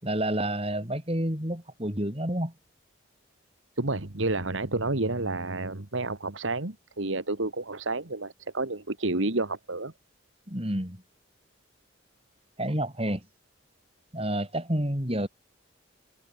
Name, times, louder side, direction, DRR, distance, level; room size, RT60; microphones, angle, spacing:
voice 1, 0.0-2.5 10.5-11.0 12.6-13.2 14.1-15.3, right 1 dB, 30° right, 4.8 m, -29 dB
voice 2, 3.8-9.9, right 2 dB, 70° right, 1.9 m, -30 dB
head